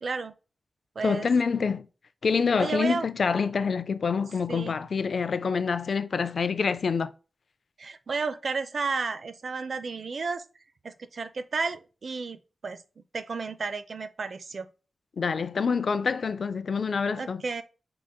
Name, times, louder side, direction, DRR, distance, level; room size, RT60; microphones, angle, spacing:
voice 1, 0.0-0.3 1.0-1.3 2.6-3.1 4.5-4.8 7.8-10.4 10.8-12.8 13.1-14.7 17.2-17.6, right 4 dB, 55° right, 0.4 m, -32 dB
voice 2, 1.0-1.9 2.2-7.1 15.2-17.4, left 5 dB, 60° left, 0.4 m, -26 dB
5.0 x 3.8 x 2.2 m
wide cardioid pair, 145°, 0 cm